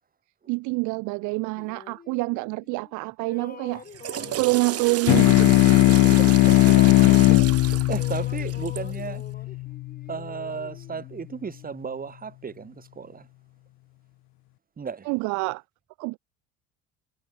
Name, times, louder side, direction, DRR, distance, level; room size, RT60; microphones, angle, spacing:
voice 1, 0.5-3.8 4.4-5.6 15.1-15.6 16.0-16.2, right 27 dB, 60° right, 0.5 m, -26 dB
sound 1, 1.6-2.9 3.2-7.6 7.9-11.7, left 6 dB, 25° left, 2.0 m, -47 dB
Water / Toilet flush, 3.8-9.0, right 11 dB, 45° right, 1.3 m, -33 dB
sound 2, 5.1-9.9, left 20 dB, 55° left, 0.6 m, -18 dB
voice 2, 6.2-6.9 7.6-9.2 10.1-13.3 14.8-15.1, right 6 dB, 25° right, 1.9 m, -35 dB
hypercardioid pair, 80°, 34 cm